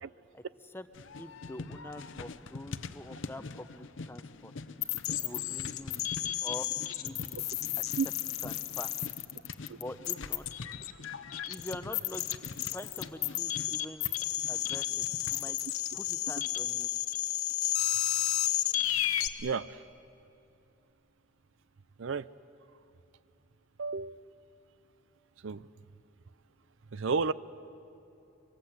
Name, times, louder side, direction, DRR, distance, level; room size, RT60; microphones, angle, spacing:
voice 1, 0.3-0.9 1.2-4.5 5.2-6.7 7.0-7.4 8.4-8.9 9.7-10.6 11.5-15.6 15.9-16.9, left 1 dB, 10° left, 10 dB, 0.7 m, -45 dB
sound 1, 0.9-15.5, left 3 dB, 60° left, 0.7 m, -45 dB
sound 2, 4.8-19.3, left 13 dB, 85° left, 1.0 m, -32 dB
voice 2, 19.4-19.8 22.0-22.3 23.8-24.2 25.4-25.6 26.9-27.3, right 5 dB, 65° right, 17 dB, 0.5 m, -31 dB
25.0 x 24.5 x 8.0 m, 2.8 s
head